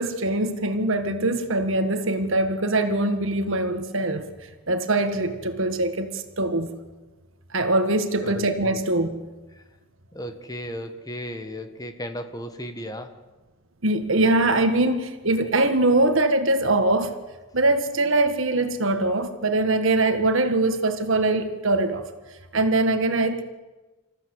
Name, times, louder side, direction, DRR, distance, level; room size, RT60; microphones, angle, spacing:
voice 1, 0.0-4.2 4.7-6.7 7.5-9.2 13.8-17.1 17.5-22.1 22.5-23.4, right 2 dB, 65° right, 1.7 m, -22 dB
voice 2, 8.2-8.8 9.5-9.7 10.1-13.2, equal, 15° left, 1.5 m, -35 dB
26.5 x 14.5 x 8.1 m
head